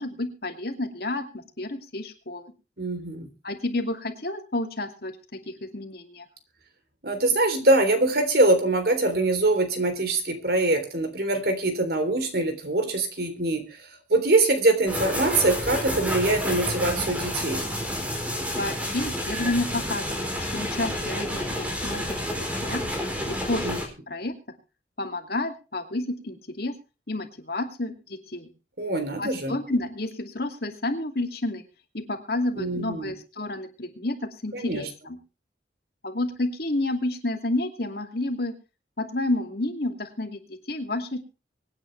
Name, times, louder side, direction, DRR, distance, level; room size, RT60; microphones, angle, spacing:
voice 1, 0.0-2.5 3.4-6.3 18.6-22.0 22.6-22.8 23.3-23.7 24.1-24.3 25.0-26.7 27.1-28.5 29.2-31.6 31.9-35.2 36.0-38.5 39.0-41.2, left 2 dB, 60° left, 5 dB, 2.6 m, -30 dB
voice 2, 2.8-3.3 7.0-13.6 14.1-17.6 23.6-23.8 28.8-29.6 32.6-33.1 34.5-34.8, right 2 dB, 60° right, 8 dB, 3.4 m, -23 dB
sound 1, 14.9-23.9, equal, 10° right, 4.1 m, -29 dB
24.5 x 9.7 x 3.3 m, 0.31 s
head